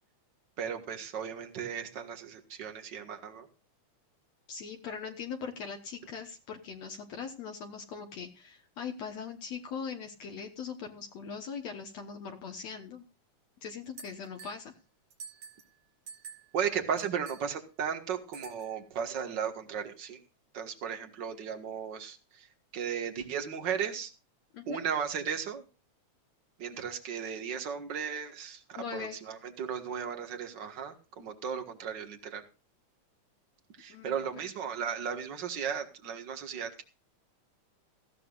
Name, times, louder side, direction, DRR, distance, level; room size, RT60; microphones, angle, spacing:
voice 1, 0.6-3.5 16.5-20.2 20.5-22.5 22.7-24.1 24.7-25.6 26.6-32.4 33.8-36.8, right 7 dB, 40° right, 6 dB, 1.9 m, -35 dB
voice 2, 4.5-13.0 13.6-14.8 24.5-24.8 28.7-29.2 33.9-34.5, left 6 dB, 65° left, 3 dB, 2.2 m, -41 dB
sound 1, 14.0-14.7 15.1-15.7 16.1-16.6 17.0-17.5 18.3-18.8, right 5 dB, 70° right, 3.4 m, -48 dB
18.0 x 15.0 x 2.5 m, 0.32 s
omnidirectional pair, 3.5 m